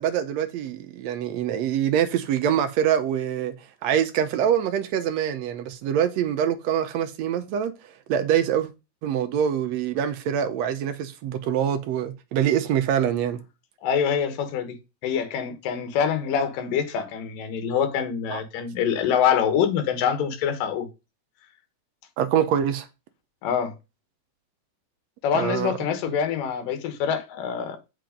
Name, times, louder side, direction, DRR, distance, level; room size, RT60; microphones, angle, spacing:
voice 1, 0.0-3.5 3.8-7.7 8.1-8.7 9.0-13.4 18.3-18.4 22.2-22.9 25.3-25.7, right 9 dB, 85° right, 1.5 m, -24 dB
voice 2, 13.8-14.8 15.0-20.9 23.4-23.7 25.2-27.8, left 8 dB, 70° left, 2.9 m, -25 dB
7.7 x 5.8 x 5.2 m
omnidirectional pair, 4.1 m